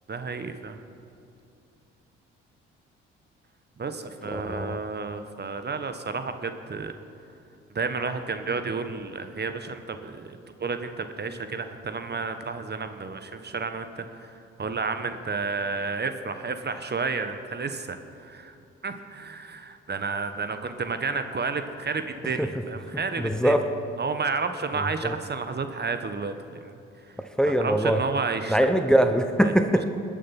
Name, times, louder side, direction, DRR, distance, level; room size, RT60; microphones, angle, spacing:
voice 1, 0.1-0.8 3.8-6.9 7.7-18.6 18.8-23.5 24.0-26.8 27.1-27.2 27.4-28.6 29.4-29.5, right 4 dB, 35° right, 9 dB, 1.2 m, -31 dB
voice 2, 4.3-4.8 22.4-22.5 23.2-23.6 24.7-25.2 27.4-28.0 28.5-29.8, equal, ahead, 7 dB, 1.0 m, -22 dB
21.0 x 7.5 x 5.9 m, 2.6 s
hypercardioid pair, 55°, 29 cm